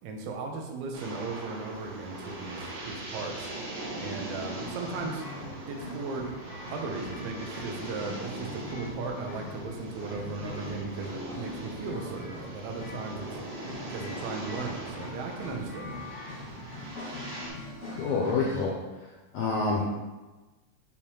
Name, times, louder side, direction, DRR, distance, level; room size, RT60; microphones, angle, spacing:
voice 1, 0.0-3.5 3.9-5.3 5.7-6.3 6.7-13.3 13.9-16.1, right 3 dB, 80° right, 2 dB, 1.4 m, -37 dB
sound 1, 0.9-17.5, right 2 dB, 60° right, 1.0 m, -40 dB
sound 2, 4.4-18.6, left 2 dB, 45° left, 0.9 m, -43 dB
voice 2, 18.0-18.7 19.3-19.8, left 4 dB, 80° left, -3 dB, 1.5 m, -27 dB
6.5 x 2.8 x 2.8 m, 1.2 s
omnidirectional pair, 3.3 m